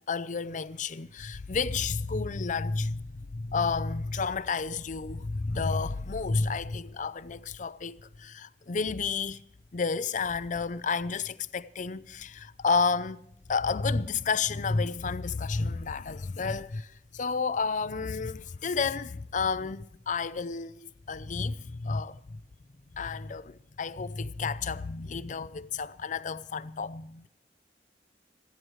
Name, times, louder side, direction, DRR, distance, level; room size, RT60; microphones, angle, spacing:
voice 1, 0.1-3.0 3.3-9.4 9.7-13.2 13.5-16.9 17.1-22.4 23.0-27.3, left 4 dB, 45° left, 0.6 m, -31 dB
26.5 x 10.5 x 3.2 m
head